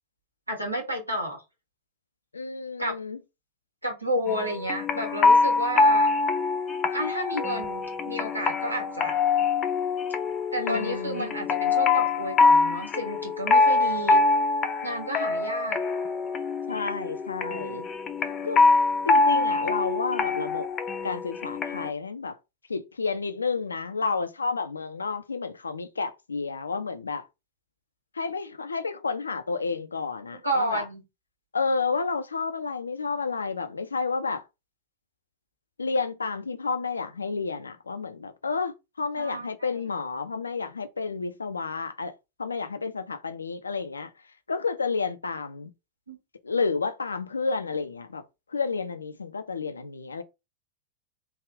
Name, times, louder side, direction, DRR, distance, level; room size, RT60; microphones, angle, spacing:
voice 1, 0.5-1.4 2.8-2.9 3.8-6.1 6.9-9.2 10.5-14.2 14.8-15.8 30.3-31.0 39.2-39.8 46.1-46.2, right 1 dB, 85° right, 1.3 m, -31 dB
voice 2, 2.3-3.2 10.6-11.3 16.7-17.9 18.4-18.6 19.0-20.7 21.0-22.3 22.7-27.2 28.1-30.9 31.5-34.4 35.8-42.1 42.4-44.1 44.5-45.7 46.4-48.2 48.5-50.2, left 4 dB, 75° left, 0.4 m, -30 dB
sound 1, 4.3-21.9, left 3 dB, 25° left, 0.5 m, -24 dB
3.4 x 2.3 x 3.4 m
figure-of-eight pair, 90°, 0 cm